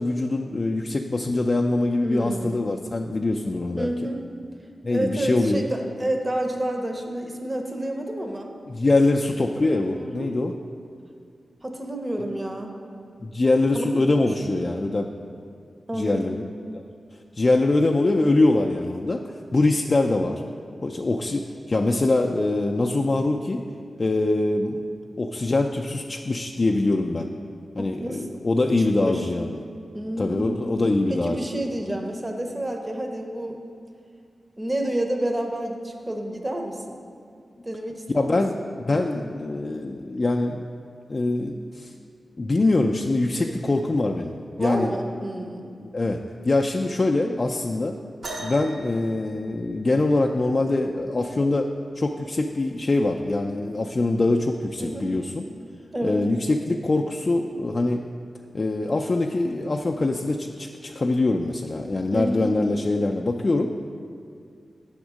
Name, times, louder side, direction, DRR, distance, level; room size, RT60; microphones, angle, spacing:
voice 1, 0.0-3.9 4.8-5.7 8.7-10.5 13.2-15.1 15.9-16.4 16.7-16.8 17.4-20.4 20.8-23.6 24.0-24.8 25.2-27.3 27.8-29.5 30.2-31.5 38.1-40.6 41.1-41.9 42.4-44.9 45.8-48.0 48.4-51.7 52.0-55.4 56.0-58.0 58.5-63.7, left 2 dB, 45° left, 1 dB, 0.3 m, -23 dB
voice 2, 2.0-2.6 3.8-4.2 4.9-8.5 9.9-10.3 11.6-12.8 13.7-13.8 14.2-14.3 14.6-14.8 15.9-16.3 27.8-28.4 28.8-29.3 29.9-30.6 31.1-33.6 34.6-37.0 37.6-38.4 43.4-43.6 44.6-45.7 54.8-55.1 55.9-56.2 62.1-62.5, right 1 dB, 25° right, 3 dB, 0.7 m, -29 dB
sound 1, 48.2-50.1 51.8-51.9 52.7-52.9 53.8-53.9, right 2 dB, 85° right, 1.1 m, -38 dB
7.0 x 3.6 x 6.2 m, 2.3 s
cardioid pair, 60°, 0 cm